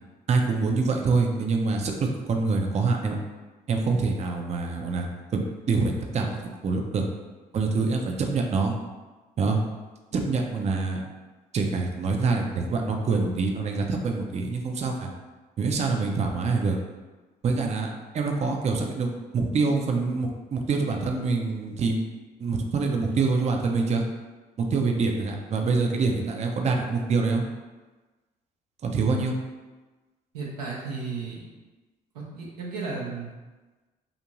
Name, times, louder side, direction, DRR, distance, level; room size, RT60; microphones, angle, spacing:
voice 1, 0.3-3.2 3.7-5.1 5.3-6.4 6.6-7.0 7.5-8.7 9.4-9.6 10.1-11.0 11.5-15.1 15.6-16.8 17.4-17.9 18.1-22.0 22.4-24.0 24.6-27.4 28.8-29.3, right 4 dB, 35° right, 2 dB, 0.5 m, -25 dB
voice 2, 30.3-31.4 32.1-33.3, right 4 dB, 90° right, -4 dB, 0.6 m, -34 dB
2.5 x 2.5 x 2.9 m, 1.2 s
hypercardioid pair, 50°, 20 cm